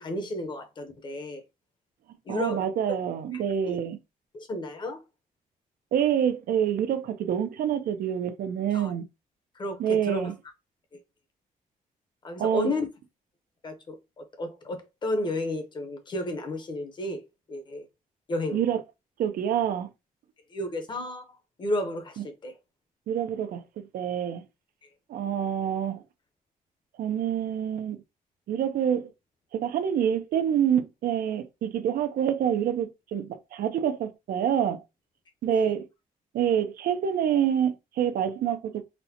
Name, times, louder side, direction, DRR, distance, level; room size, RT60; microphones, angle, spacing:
voice 1, 0.0-1.4 2.3-2.7 3.3-3.8 4.3-5.0 8.7-8.9 9.6-10.2 12.2-12.9 13.6-17.2 17.5-17.8 18.3-18.6 20.5-21.2 21.6-22.5 35.5-35.7, left 1 dB, 30° left, 0.7 m, -32 dB
voice 2, 2.3-4.0 5.9-9.0 9.8-10.3 12.4-12.7 18.5-18.8 19.2-19.9 23.1-24.4 25.1-26.0 27.0-28.0 28.5-29.1 29.5-34.8 35.4-35.9 36.3-38.8, right 9 dB, 85° right, 0.5 m, -27 dB
4.1 x 2.1 x 2.7 m
wide cardioid pair, 175°, 15 cm